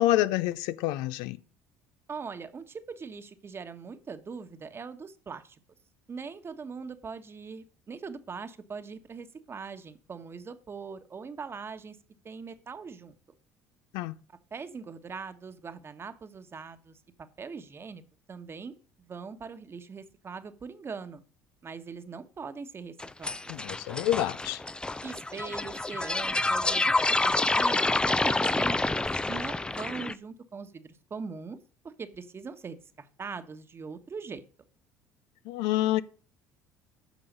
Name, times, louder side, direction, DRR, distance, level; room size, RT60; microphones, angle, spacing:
voice 1, 0.0-1.4 13.9-14.1 23.5-24.6 35.5-36.0, left 14 dB, 75° left, 0.5 m, -27 dB
voice 2, 2.1-5.6 6.1-12.0 12.2-13.1 14.5-17.0 17.4-18.0 18.3-21.2 21.6-23.5 25.0-31.6 31.8-34.4, right 5 dB, 35° right, 1.2 m, -41 dB
sound 1, 23.0-30.1, left 2 dB, 10° left, 0.5 m, -28 dB
9.2 x 6.1 x 5.3 m
hypercardioid pair, 70°, 8 cm